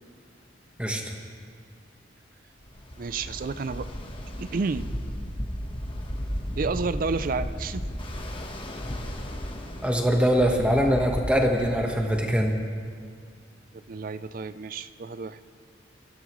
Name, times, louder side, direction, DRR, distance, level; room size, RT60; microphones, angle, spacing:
Ocean, 2.6-12.5, equal, 25° left, 1.2 m, -35 dB
voice 1, 3.0-3.9 4.4-4.9 6.6-7.9 13.7-15.4, right 4 dB, 45° right, 14 dB, 0.4 m, -30 dB
voice 2, 9.8-12.6, equal, 5° right, 2 dB, 1.2 m, -23 dB
23.0 x 14.0 x 3.1 m, 2.2 s
head